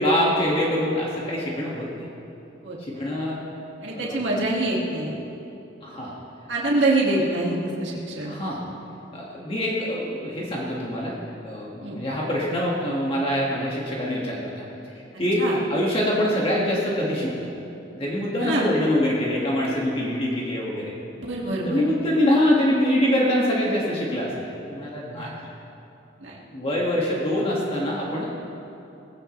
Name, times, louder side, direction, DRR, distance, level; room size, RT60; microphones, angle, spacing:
voice 1, 0.0-2.0 2.9-3.4 3.9-4.2 5.8-6.2 8.2-8.7 9.1-11.1 11.4-17.5 17.9-20.9 21.6-25.3 26.5-28.3, left 1 dB, 30° left, -5 dB, 2.0 m, -24 dB
voice 2, 2.6-3.1 3.8-5.2 6.5-8.4 11.8-12.0 15.4-15.6 18.4-18.7 21.2-21.8 25.1-25.3 26.2-26.4, right 2 dB, 75° right, -4 dB, 2.2 m, -25 dB
19.5 x 16.5 x 3.3 m, 2.9 s
head